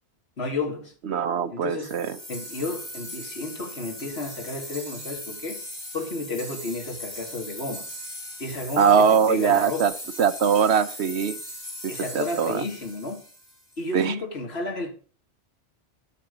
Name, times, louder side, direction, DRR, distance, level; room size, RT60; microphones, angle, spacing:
voice 1, 0.4-0.9 1.5-2.0 2.3-5.6 5.9-7.9 8.4-10.0 11.9-13.2 13.8-14.9, left 3 dB, 60° left, 2.3 m, -32 dB
voice 2, 1.0-2.2 8.8-9.9 10.2-11.4 12.1-12.6 13.9-14.1, right 7 dB, 65° right, 1.0 m, -21 dB
sound 1, 1.8-13.8, equal, 35° left, 3.1 m, -39 dB
12.5 x 8.4 x 5.1 m
omnidirectional pair, 1.2 m